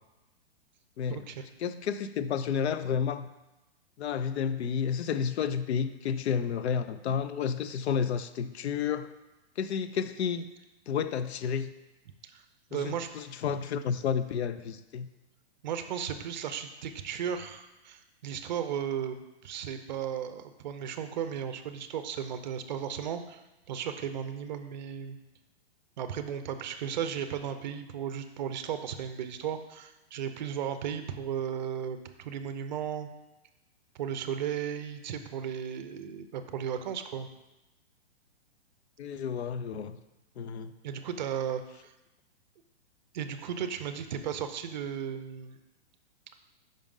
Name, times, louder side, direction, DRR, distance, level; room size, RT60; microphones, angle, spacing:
voice 1, 1.1-1.4 12.3-12.4 12.7-13.1 15.6-23.4 23.7-25.2 26.0-33.1 33.9-37.3 40.8-41.9 43.1-45.6, right 8 dB, 45° right, 8 dB, 0.5 m, -35 dB
voice 2, 1.6-3.3 4.0-9.1 9.6-10.5 10.9-11.7 12.7-15.1 39.0-40.0 40.4-40.7, left 7 dB, 85° left, 13 dB, 0.5 m, -31 dB
5.3 x 5.1 x 3.7 m, 1.0 s
hypercardioid pair, 165°, 32 cm